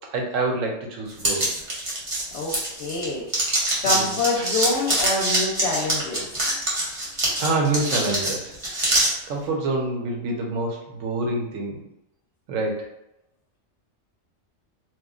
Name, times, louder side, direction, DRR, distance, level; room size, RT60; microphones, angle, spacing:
voice 1, 0.1-1.5 3.8-4.0 4.4-4.5 7.4-8.5 9.3-11.8 12.5-12.8, right 2 dB, 80° right, 0 dB, 1.0 m, -26 dB
sound 1, 1.2-3.0 3.3-9.1, right 1 dB, 30° right, 0.8 m, -24 dB
voice 2, 2.3-3.3 3.8-6.5, left 3 dB, 65° left, -3 dB, 0.8 m, -26 dB
3.0 x 2.2 x 2.3 m, 0.85 s
omnidirectional pair, 1.3 m